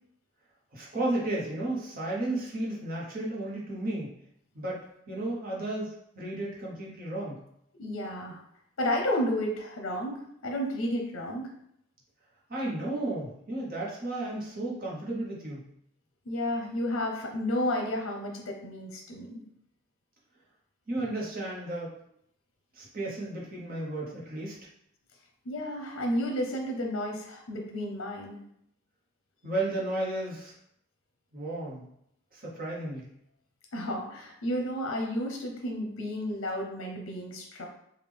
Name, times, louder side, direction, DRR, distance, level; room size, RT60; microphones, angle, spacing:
voice 1, 0.7-4.1 4.5-7.4 12.5-15.6 20.9-21.9 22.7-24.5 29.4-30.5 31.3-31.8 32.3-33.1, right 2 dB, 45° right, -4 dB, 1.0 m, -33 dB
voice 2, 7.7-8.4 8.8-11.5 16.3-19.4 25.4-28.4 33.7-37.7, left 1 dB, 70° left, 2 dB, 0.6 m, -32 dB
3.6 x 2.4 x 3.4 m, 0.74 s
head